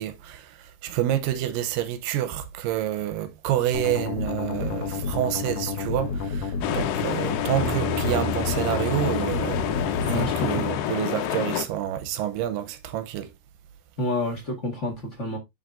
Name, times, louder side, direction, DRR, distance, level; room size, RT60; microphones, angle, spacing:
voice 1, 0.0-13.3, right 12 dB, 90° right, 2.4 m, -28 dB
sound 1, 3.7-10.6, left 5 dB, 65° left, 1.6 m, -30 dB
sound 2, 4.5-10.8, right 1 dB, 20° left, 0.5 m, -36 dB
sound 3, 6.6-11.7, left 11 dB, 85° left, 2.4 m, -29 dB
voice 2, 10.0-10.6 14.0-15.4, left 1 dB, 45° left, 0.9 m, -29 dB
10.5 x 4.0 x 2.5 m
omnidirectional pair, 3.9 m